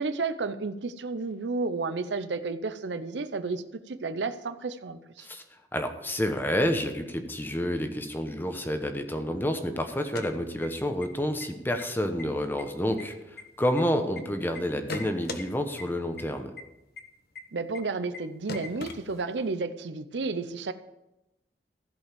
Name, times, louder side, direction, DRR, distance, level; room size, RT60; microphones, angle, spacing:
voice 1, 0.0-5.3 17.5-20.7, right 3 dB, 85° right, 11 dB, 0.6 m, -32 dB
voice 2, 5.7-16.5, equal, 10° left, 6 dB, 0.9 m, -29 dB
sound 1, 10.0-11.1 11.4-11.5 11.8-12.2 12.6-14.2 14.6-15.4 15.8-15.9 16.2-16.3 16.6-16.7 17.0-17.1 17.4-17.5 17.7-17.8 18.1-18.2 18.5-19.5, left 3 dB, 60° left, 1.1 m, -39 dB
15.0 x 5.3 x 6.8 m, 0.96 s
head